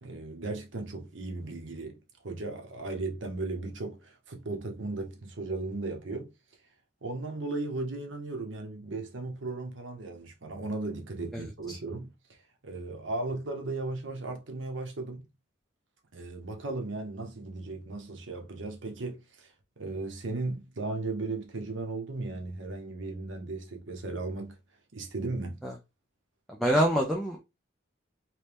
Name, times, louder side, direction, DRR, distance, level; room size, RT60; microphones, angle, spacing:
voice 1, 0.0-2.0 2.2-6.3 7.0-12.4 12.6-15.2 16.1-24.6 24.9-25.6, right 2 dB, 75° right, 0.9 m, -36 dB
voice 2, 11.3-11.8 25.6-25.7 26.5-27.4, equal, ahead, 0.5 m, -27 dB
3.2 x 2.8 x 3.4 m
head